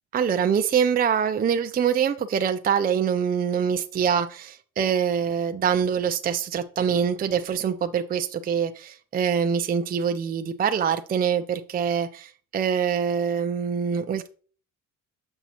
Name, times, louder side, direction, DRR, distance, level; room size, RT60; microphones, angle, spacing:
voice 1, 0.1-14.3, right 7 dB, 30° right, 0.4 m, -24 dB
7.1 x 5.4 x 2.9 m
cardioid pair, 100°, 32 cm